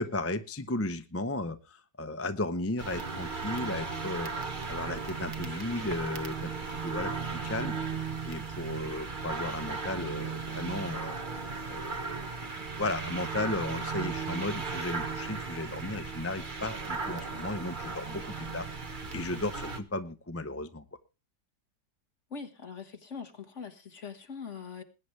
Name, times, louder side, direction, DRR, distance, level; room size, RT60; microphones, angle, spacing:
voice 1, 0.0-7.1 7.4-7.7 8.2-11.2 11.7-12.3 12.8-18.7 19.1-20.8, left 2 dB, 15° left, 9 dB, 0.5 m, -35 dB
sound 1, 2.8-19.8, right 4 dB, 30° right, 1.3 m, -36 dB
voice 2, 22.3-24.8, left 5 dB, 45° left, 6 dB, 1.9 m, -42 dB
20.5 x 9.5 x 3.3 m, 0.30 s
omnidirectional pair, 1.8 m